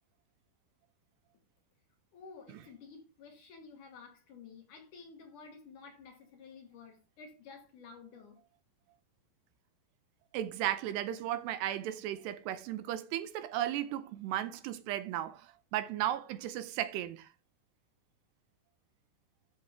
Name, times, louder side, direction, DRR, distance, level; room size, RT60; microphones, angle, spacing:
voice 1, 2.1-8.4, left 5 dB, 60° left, 2.3 m, -52 dB
voice 2, 10.3-17.3, right 12 dB, 80° right, 2.7 m, -35 dB
14.0 x 5.9 x 3.5 m
omnidirectional pair, 5.1 m